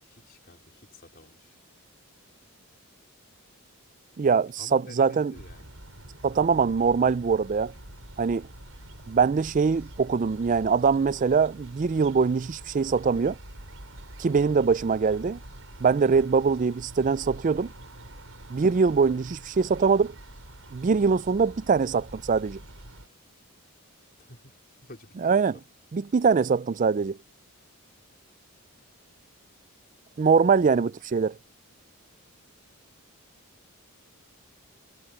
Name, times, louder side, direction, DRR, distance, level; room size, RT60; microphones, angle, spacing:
voice 1, 0.0-1.6 4.6-5.7 24.2-24.5 24.8-25.5 30.2-30.9, left 1 dB, 40° left, 4.4 m, -50 dB
voice 2, 4.2-5.3 6.2-7.7 8.2-8.5 9.1-13.4 14.2-15.4 15.8-17.7 18.5-20.1 20.7-22.6 25.2-25.5 25.9-27.2 30.2-31.4, right 5 dB, 35° right, 0.3 m, -23 dB
sound 1, 5.3-23.1, right 1 dB, 65° right, 7.3 m, -46 dB
head